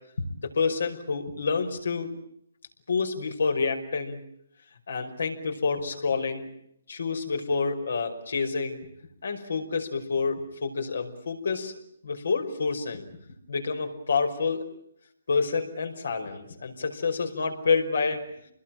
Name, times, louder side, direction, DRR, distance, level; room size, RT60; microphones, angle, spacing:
voice 1, 0.2-2.1 2.9-4.2 4.9-6.5 6.9-8.9 9.2-11.7 12.0-13.1 13.5-14.6 15.3-18.2, left 4 dB, 75° left, 5 dB, 5.4 m, -28 dB
28.0 x 21.0 x 9.0 m, 0.73 s
hypercardioid pair, 160°, 0 cm